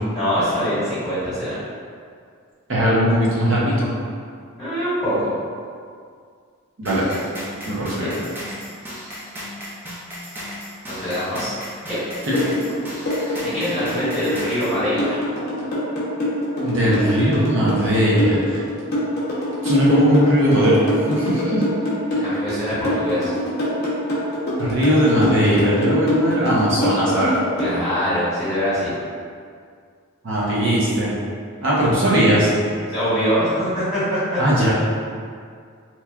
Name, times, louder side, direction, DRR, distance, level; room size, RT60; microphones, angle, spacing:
voice 1, 0.1-1.6 4.6-5.3 7.8-8.1 10.9-11.5 11.8-12.0 13.4-15.2 22.1-23.3 27.6-28.9 32.9-34.4, equal, 5° left, -16 dB, 1.3 m, -24 dB
voice 2, 2.7-3.9 6.8-7.2 7.7-8.1 12.3-12.4 13.3-13.4 16.6-18.6 19.6-20.8 21.1-21.6 24.6-27.3 30.2-31.2 31.6-32.5 34.4-34.7, equal, 60° right, -7 dB, 0.6 m, -19 dB
sound 1, 6.9-14.8, equal, 10° right, 0.4 m, -35 dB
sound 2, 12.3-27.7, left 1 dB, 45° left, 0.6 m, -24 dB
3.0 x 2.3 x 2.3 m, 2.2 s
head